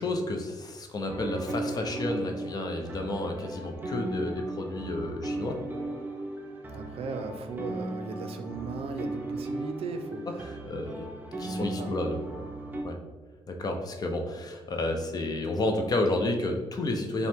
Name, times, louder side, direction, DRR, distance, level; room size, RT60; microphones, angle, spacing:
voice 1, 0.0-5.6 10.4-11.1 11.4-12.2 12.8-12.9 13.5-17.3, left 2 dB, 40° left, 3 dB, 0.5 m, -31 dB
sound 1, 1.1-12.8, right 2 dB, 20° right, 0.5 m, -37 dB
voice 2, 6.7-10.3 11.4-11.9, right 4 dB, 70° right, 7 dB, 0.4 m, -37 dB
5.3 x 2.1 x 3.4 m, 1.3 s
cardioid pair, 125°, 10 cm